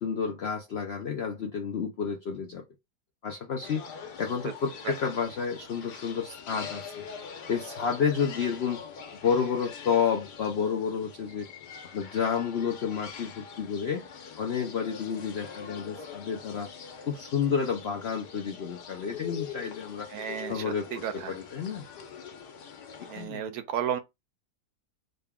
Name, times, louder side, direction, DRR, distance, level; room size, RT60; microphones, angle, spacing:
voice 1, 0.0-2.6 3.2-3.9 4.2-7.0 7.5-8.8 9.2-11.5 11.9-14.0 14.4-16.7 17.1-20.1 20.5-21.8 23.0-23.4, left 6 dB, 70° left, 0.6 m, -30 dB
sound 1, 3.6-23.3, left 6 dB, 90° left, 1.4 m, -44 dB
voice 2, 20.1-21.3 23.1-24.0, right 9 dB, 70° right, 1.0 m, -33 dB
3.9 x 2.2 x 3.5 m
omnidirectional pair, 1.7 m